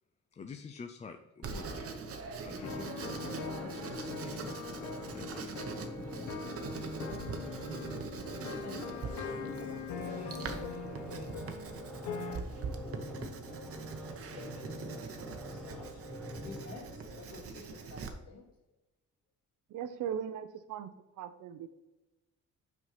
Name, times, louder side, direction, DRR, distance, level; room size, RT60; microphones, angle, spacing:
voice 1, 0.3-2.1 2.4-4.5 5.1-5.6, left 5 dB, 25° left, 5 dB, 0.4 m, -48 dB
Writing, 1.4-18.1, right 4 dB, 50° right, 0.9 m, -43 dB
sound 1, 2.6-12.4, left 5 dB, 75° left, 1.2 m, -42 dB
sound 2, 2.6-17.7 18.1-18.2, equal, ahead, 0.9 m, -46 dB
voice 2, 8.6-11.4 12.0-13.9 14.3-18.5, left 3 dB, 55° left, -2 dB, 2.3 m, -51 dB
voice 3, 19.7-20.9 21.2-21.7, right 8 dB, 90° right, 10 dB, 0.7 m, -38 dB
5.8 x 4.5 x 5.7 m, 1.0 s
cardioid pair, 155°, 30 cm